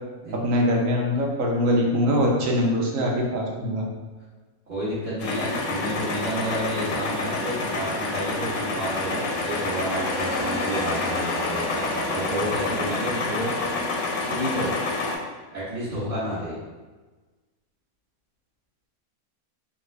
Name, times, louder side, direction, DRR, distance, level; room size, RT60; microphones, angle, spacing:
voice 1, 0.3-3.8, equal, 70° right, -1 dB, 1.0 m, -23 dB
voice 2, 4.7-13.5 14.2-14.7 15.5-16.5, equal, 35° right, -14 dB, 1.2 m, -30 dB
sound 1, 5.2-15.2, left 3 dB, 70° left, 0.9 m, -28 dB
3.7 x 2.2 x 3.2 m, 1.3 s
omnidirectional pair, 1.5 m